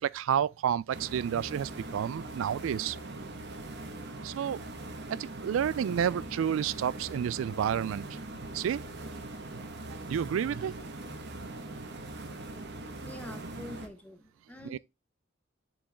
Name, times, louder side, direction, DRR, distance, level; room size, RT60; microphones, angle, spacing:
voice 1, 0.0-3.0 4.2-4.6 5.4-8.0 8.5-8.8 9.1-9.2 10.1-10.7 14.6-14.8, right 8 dB, 75° right, 0.3 m, -30 dB
sound 1, 0.9-13.9, right 2 dB, 60° right, 1.2 m, -41 dB
voice 2, 13.0-14.8, left 1 dB, 10° left, 1.0 m, -46 dB
7.3 x 4.6 x 3.5 m
head